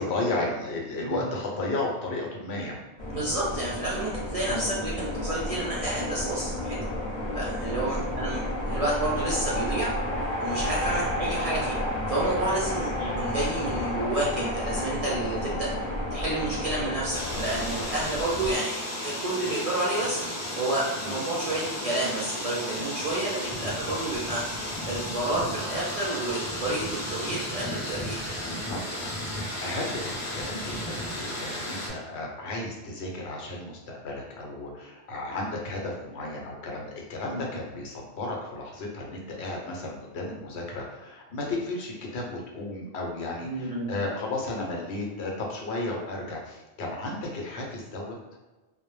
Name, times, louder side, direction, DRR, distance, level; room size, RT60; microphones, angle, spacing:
voice 1, 0.0-2.8 4.5-4.7 7.9-8.1 10.8-11.0 12.8-12.9 21.0-21.2 28.7-28.8 29.6-48.2, left 2 dB, 85° left, -1 dB, 0.9 m, -34 dB
sound 1, 3.0-18.6, left 1 dB, 50° left, 0.7 m, -31 dB
voice 2, 3.1-6.8 7.3-9.9 10.4-11.8 12.1-15.7 16.1-18.8 19.0-20.2 20.6-24.4 24.9-28.2 37.3-37.5 43.4-43.9, right 2 dB, 55° right, -6 dB, 0.4 m, -30 dB
sound 2, 17.1-31.9, left 1 dB, 25° left, 0.4 m, -34 dB
2.1 x 2.0 x 3.0 m, 1.1 s
omnidirectional pair, 1.1 m